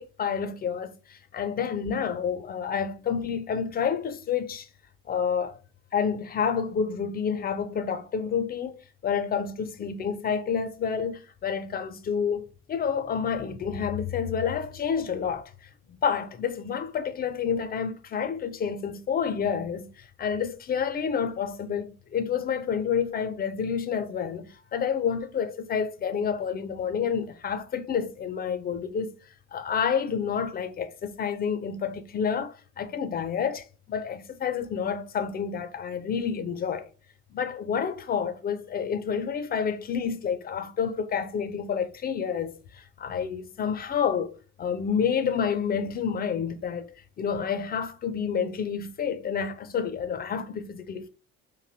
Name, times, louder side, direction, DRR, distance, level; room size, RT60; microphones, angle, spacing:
voice 1, 0.0-4.7 5.1-5.6 5.9-8.8 9.0-15.5 16.0-29.1 29.5-36.9 37.3-46.8 47.2-51.1, left 7 dB, 25° left, 0.3 m, -29 dB
3.0 x 2.6 x 2.5 m
figure-of-eight pair, 45°, 45 cm